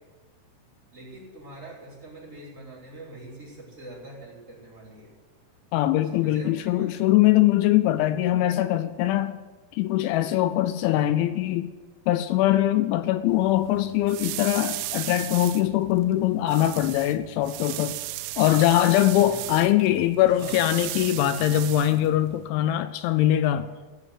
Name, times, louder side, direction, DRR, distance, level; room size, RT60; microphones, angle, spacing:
voice 1, 0.9-5.1 6.1-7.0 19.1-19.4 20.4-20.5 21.8-22.1, right 1 dB, 15° right, 4.7 m, -44 dB
voice 2, 5.7-9.3 9.7-11.7 12.1-18.0 18.4-23.7, left 13 dB, 85° left, 2.8 m, -22 dB
sound 1, 13.3-22.5, right 17 dB, 85° right, 2.6 m, -36 dB
16.5 x 6.7 x 9.7 m
omnidirectional pair, 5.7 m